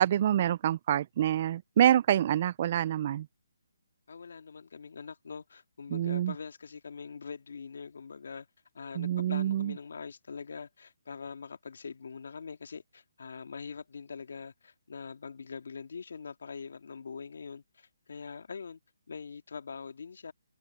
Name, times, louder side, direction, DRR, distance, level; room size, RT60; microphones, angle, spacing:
voice 1, 0.0-3.3 5.9-6.3 9.0-9.7, right 11 dB, 30° right, 0.3 m, -26 dB
voice 2, 4.1-8.5 8.7-18.8 19.1-20.3, left 5 dB, 65° left, 2.0 m, -43 dB
hypercardioid pair, 170°, 0 cm